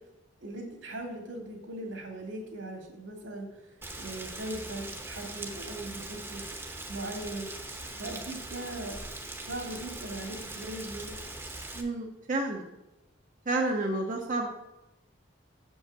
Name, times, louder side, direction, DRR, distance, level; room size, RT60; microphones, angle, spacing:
voice 1, 0.4-6.4 6.9-7.5 8.0-9.0 9.5-11.2, right 1 dB, 80° right, 1 dB, 2.4 m, -39 dB
Rain, 3.8-11.8, right 2 dB, 10° right, 0.9 m, -41 dB
voice 2, 11.7-12.7 13.5-14.5, right 2 dB, 40° right, 1 dB, 0.8 m, -30 dB
7.1 x 5.4 x 7.3 m, 0.96 s
head